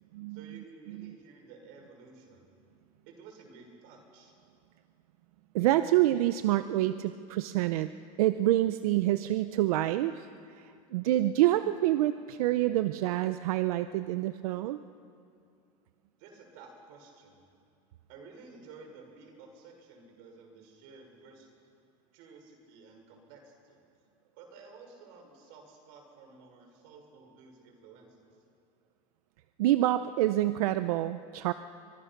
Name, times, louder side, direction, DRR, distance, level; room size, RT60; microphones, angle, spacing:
voice 1, 0.3-2.5 3.0-4.3 16.2-17.4 18.1-21.5 22.1-23.8 24.4-28.3, right 4 dB, 55° right, 3 dB, 6.1 m, -53 dB
voice 2, 5.5-7.9 8.2-14.8 29.6-31.5, right 14 dB, 85° right, 11 dB, 0.7 m, -27 dB
29.5 x 25.0 x 6.0 m, 2.4 s
supercardioid pair, 165°, 18 cm